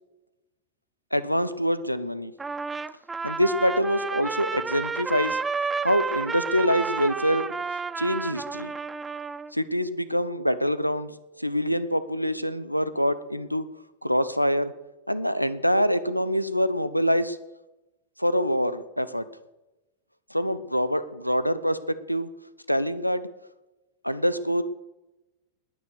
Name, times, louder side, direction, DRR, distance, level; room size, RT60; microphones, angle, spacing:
voice 1, 1.1-2.3 3.2-5.4 5.8-7.5 8.0-8.7 9.5-11.1 11.4-13.7 14.0-14.7 15.1-17.4 18.2-19.3 20.3-22.3 22.7-23.3 24.0-24.6, equal, 90° left, 14 dB, 0.9 m, -25 dB
Trumpet, 2.4-9.5, right 4 dB, 15° right, 0.4 m, -31 dB
20.0 x 9.3 x 6.5 m, 1.0 s
figure-of-eight pair, 90°, 0 cm